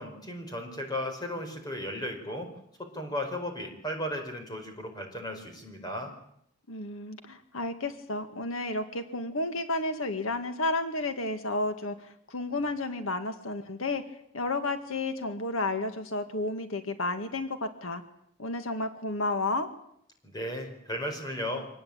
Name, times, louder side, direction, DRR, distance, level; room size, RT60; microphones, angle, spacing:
voice 1, 0.0-2.5 2.8-6.1 20.2-21.7, left 1 dB, 20° left, 4 dB, 4.8 m, -35 dB
voice 2, 6.7-14.0 14.3-18.0 18.4-19.7, left 2 dB, 90° left, 8 dB, 2.0 m, -32 dB
24.5 x 19.0 x 8.9 m, 0.72 s
head